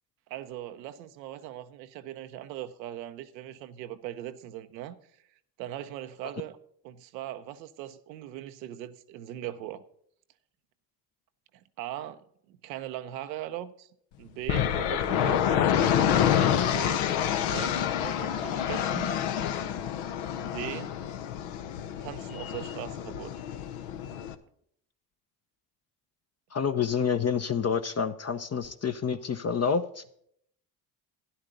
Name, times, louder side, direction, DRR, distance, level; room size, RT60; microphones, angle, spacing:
voice 1, 0.3-5.0 5.6-6.6 6.8-9.8 11.5-13.9 14.2-15.7 16.6-19.1 20.3-20.9 22.0-23.5, right 13 dB, 85° right, 0.8 m, -40 dB
sound 1, 14.5-24.3, left 9 dB, 70° left, 1.0 m, -28 dB
voice 2, 26.5-30.0, left 6 dB, 30° left, 0.7 m, -28 dB
12.5 x 10.5 x 3.9 m
hypercardioid pair, 60°, 49 cm